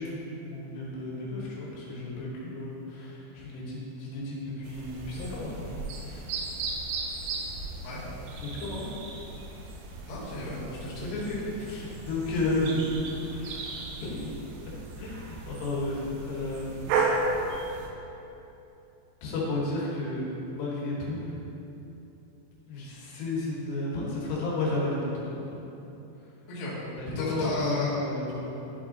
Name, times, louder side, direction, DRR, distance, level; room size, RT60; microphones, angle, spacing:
voice 1, 0.0-6.2 8.4-8.9 11.0-14.5 15.0-16.9 19.2-20.3 20.5-21.2 22.7-25.6 27.0-28.6, left 2 dB, 75° left, -5 dB, 3.2 m, -32 dB
sound 1, 4.6-17.9, right 3 dB, 90° right, 3.0 m, -35 dB
voice 2, 10.0-11.1 26.5-26.8 27.1-28.0, left 2 dB, 55° left, -9 dB, 2.1 m, -34 dB
11.0 x 3.6 x 3.7 m, 3.0 s
omnidirectional pair, 5.1 m